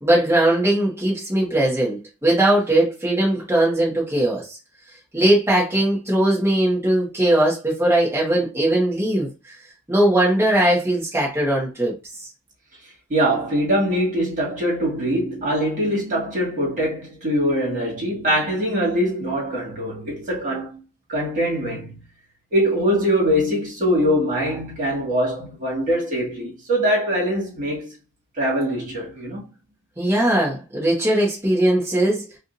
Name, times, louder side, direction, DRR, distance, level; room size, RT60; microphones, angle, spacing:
voice 1, 0.0-4.4 5.1-9.3 9.9-11.9 30.0-32.4, right 1 dB, 10° right, 1.4 m, -19 dB
voice 2, 13.1-20.8 21.1-22.0 22.5-27.9 28.4-29.5, equal, 40° right, 2.1 m, -23 dB
4.9 x 2.6 x 2.7 m
head